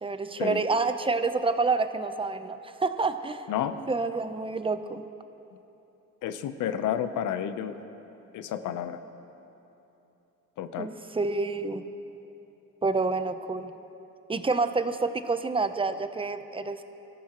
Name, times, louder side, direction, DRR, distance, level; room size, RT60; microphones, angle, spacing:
voice 1, 0.0-3.5 3.9-5.0 10.8-11.8 12.8-13.7 14.3-16.8, right 3 dB, 20° right, 10 dB, 0.7 m, -28 dB
voice 2, 6.2-7.8 8.3-9.0 10.6-10.9, left 10 dB, 85° left, 10 dB, 0.8 m, -30 dB
23.5 x 14.0 x 3.0 m, 3.0 s
cardioid pair, 90°, 30 cm